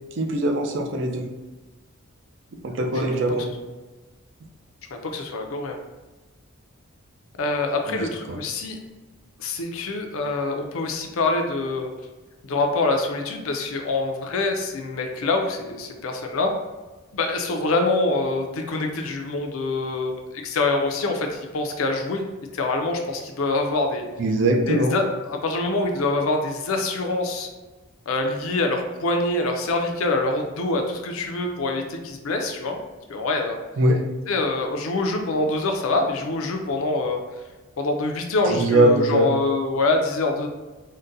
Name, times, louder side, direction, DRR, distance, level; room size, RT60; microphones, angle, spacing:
voice 1, 0.1-1.2 2.6-3.5 7.9-8.0 8.3-8.4 24.2-25.0 33.8-34.0 38.5-39.3, right 1 dB, 55° right, 2 dB, 0.4 m, -21 dB
voice 2, 4.9-5.8 7.4-8.8 9.4-11.9 12.4-16.5 17.1-22.2 22.5-24.0 24.7-27.5 28.1-32.8 33.1-33.6 34.3-37.2 37.8-40.5, left 2 dB, 75° left, 3 dB, 0.5 m, -25 dB
3.8 x 2.2 x 2.6 m, 1.2 s
head